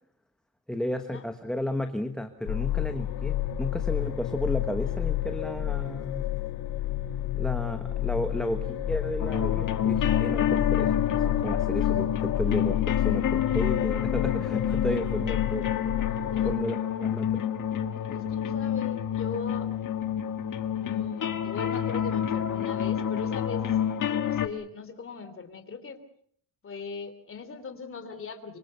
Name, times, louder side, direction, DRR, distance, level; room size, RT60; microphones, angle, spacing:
voice 1, 0.7-6.3 7.3-15.7 16.4-17.4, left 1 dB, ahead, 6 dB, 1.2 m, -33 dB
sound 1, 2.5-16.5, left 12 dB, 85° left, 1.9 m, -30 dB
sound 2, 9.2-24.5, left 9 dB, 55° left, 1.7 m, -28 dB
voice 2, 16.3-16.6 18.1-19.7 20.8-23.7 24.1-26.0 26.6-28.6, left 5 dB, 35° left, 8 dB, 3.1 m, -39 dB
25.5 x 24.5 x 6.8 m, 0.64 s
wide cardioid pair, 175°, 38 cm